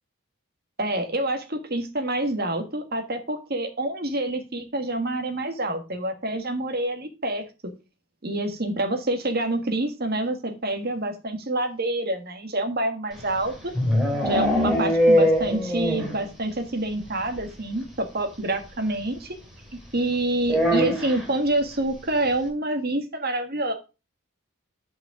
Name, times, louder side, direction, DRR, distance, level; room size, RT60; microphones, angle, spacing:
voice 1, 0.8-7.4 8.2-13.5 14.2-19.4 19.9-23.7, right 1 dB, 45° right, 5 dB, 1.6 m, -27 dB
sound 1, 13.2-16.3 16.5-16.6 16.9-17.0 17.3-17.4 18.6-18.7 20.4-21.3, equal, ahead, 2.9 m, -22 dB
8.2 x 5.6 x 4.9 m, 0.30 s
head